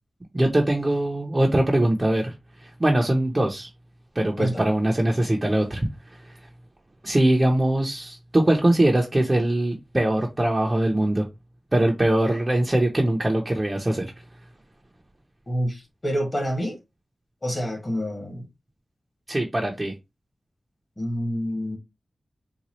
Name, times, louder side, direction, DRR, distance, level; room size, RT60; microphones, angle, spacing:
voice 1, 0.3-2.3 2.6-3.7 4.1-5.9 7.0-11.2 11.7-14.1 19.3-19.9, right 1 dB, 25° right, 0.6 m, -22 dB
voice 2, 15.5-16.8 17.4-18.4 21.0-21.8, equal, 30° left, 1.5 m, -27 dB
4.0 x 2.3 x 3.0 m
wide cardioid pair, 100°, 0 cm